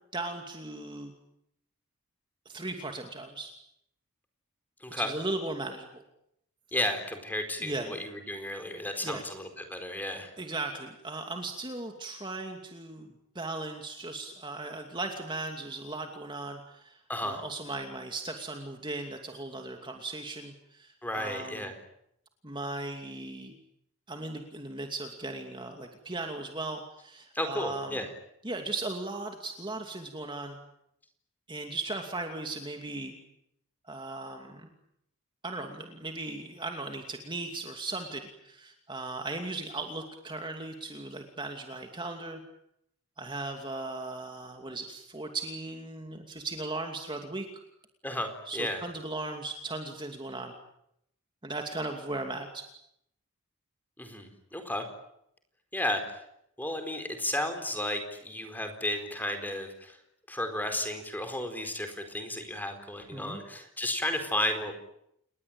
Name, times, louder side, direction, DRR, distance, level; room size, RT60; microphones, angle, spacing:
voice 1, 0.1-1.1 2.5-3.5 4.9-6.0 7.6-8.0 9.0-9.2 10.4-21.7 22.4-23.5 24.1-28.1 28.4-30.6 31.5-33.1 33.9-34.7 35.4-42.4 43.2-47.5 48.5-50.5 51.4-52.7 63.1-63.4, right 2 dB, 20° right, 4 dB, 2.6 m, -37 dB
voice 2, 4.8-5.1 6.7-10.3 17.1-17.4 21.0-21.8 27.3-28.1 48.0-48.8 54.0-54.8 55.7-56.2 56.6-60.0 60.3-64.7, left 1 dB, 10° left, 6 dB, 4.4 m, -33 dB
29.5 x 20.5 x 9.0 m, 0.75 s
head